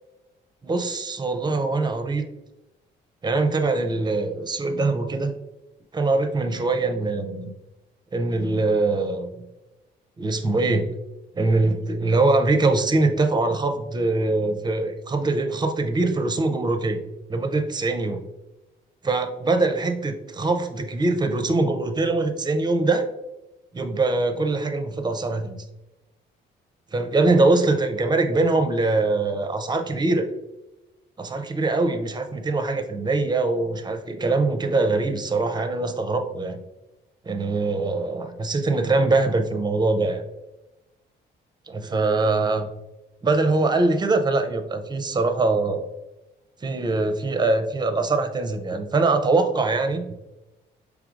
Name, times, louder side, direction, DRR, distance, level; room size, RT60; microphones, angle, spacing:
voice 1, 0.6-2.2 3.2-5.3 5.9-7.5 8.1-9.5 10.2-10.9 11.3-17.0 17.3-18.2 19.0-23.1 23.7-25.6 26.9-30.3 31.2-36.6 37.3-40.2 41.7-42.7 43.2-45.9 46.6-50.1, right 3 dB, 20° right, 7 dB, 0.5 m, -23 dB
4.8 x 3.4 x 2.4 m, 0.99 s
cardioid pair, 90°, 20 cm